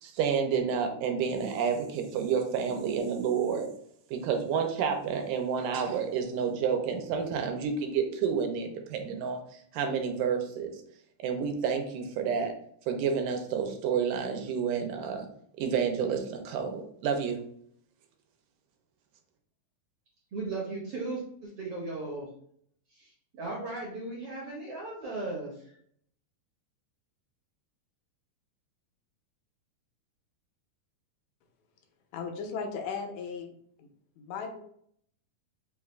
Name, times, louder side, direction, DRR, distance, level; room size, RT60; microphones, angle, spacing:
voice 1, 0.0-3.7 4.1-9.4 9.7-10.8 11.2-12.5 12.9-15.3 15.6-17.4, right 6 dB, 90° right, 4 dB, 2.3 m, -29 dB
voice 2, 20.3-22.3 22.9-25.5, right 2 dB, 65° right, -4 dB, 1.4 m, -37 dB
voice 3, 32.1-33.5 33.8-33.9 34.2-34.6, left 5 dB, 80° left, 4 dB, 2.2 m, -36 dB
5.3 x 2.4 x 3.2 m, 0.65 s
omnidirectional pair, 3.7 m